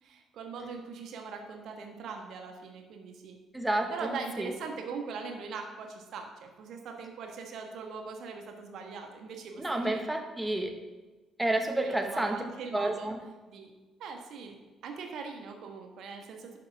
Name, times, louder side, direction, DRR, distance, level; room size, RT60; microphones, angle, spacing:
voice 1, 0.0-3.4 3.9-10.1 11.7-13.1 13.5-13.7 14.0-14.6 14.8-16.6, right 5 dB, 60° right, 3 dB, 1.5 m, -41 dB
voice 2, 3.5-4.1 4.4-4.5 9.6-10.7 11.4-12.4 12.7-13.2, right 1 dB, 10° right, 4 dB, 1.5 m, -30 dB
11.5 x 7.6 x 3.6 m, 1.2 s
figure-of-eight pair, 45°, 0 cm